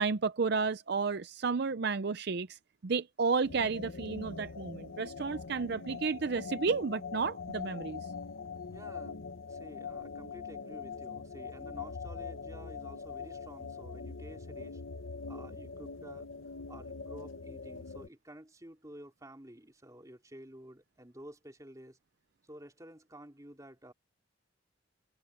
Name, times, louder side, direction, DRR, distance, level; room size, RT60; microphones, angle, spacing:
voice 1, 0.0-8.0, right 4 dB, 50° right, 0.5 m, -32 dB
sound 1, 3.4-18.1, left 5 dB, 75° left, 0.9 m, -43 dB
voice 2, 8.7-9.2 9.5-14.8 15.3-16.3 16.7-22.0 22.4-23.9, right 1 dB, 15° right, 3.3 m, -51 dB
head